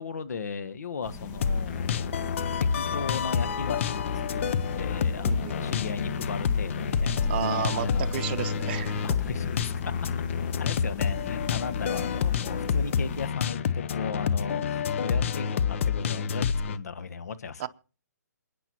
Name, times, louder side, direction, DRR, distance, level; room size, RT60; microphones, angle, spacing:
voice 1, 0.0-4.1 4.3-4.4 4.7-8.6 9.0-9.6 10.6-17.7, left 5 dB, 65° left, 1.3 m, -36 dB
sound 1, 1.0-13.3, left 3 dB, 25° left, 1.6 m, -41 dB
sound 2, 1.4-16.8, left 6 dB, 45° left, 0.8 m, -28 dB
voice 2, 5.2-5.8 7.3-9.1 17.6-17.7, right 11 dB, 35° right, 0.9 m, -32 dB
27.0 x 10.0 x 3.0 m
figure-of-eight pair, 140°, 9 cm